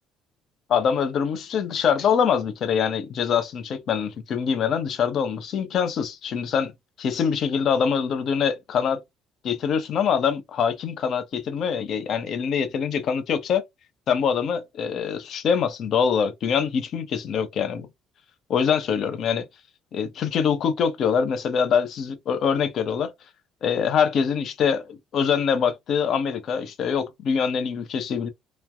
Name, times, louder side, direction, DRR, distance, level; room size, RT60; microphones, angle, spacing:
voice 1, 0.7-6.7 7.0-9.0 9.4-13.6 14.1-17.9 18.5-19.4 19.9-23.1 23.6-28.3, left 7 dB, 60° left, 0.7 m, -24 dB
3.1 x 2.2 x 2.3 m
hypercardioid pair, 60°, 0 cm